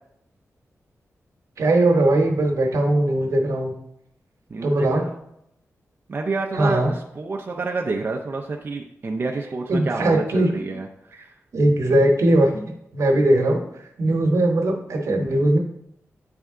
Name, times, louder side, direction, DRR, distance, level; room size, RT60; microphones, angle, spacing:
voice 1, 1.6-3.7 4.6-5.0 6.5-6.9 9.7-10.7 11.5-12.6 12.9-13.6 14.0-15.6, right 1 dB, 70° right, 3 dB, 1.0 m, -19 dB
voice 2, 4.5-5.2 6.1-11.3, right 3 dB, 40° right, 1 dB, 0.4 m, -29 dB
8.0 x 3.4 x 3.6 m, 0.77 s
wide cardioid pair, 160°, 5 cm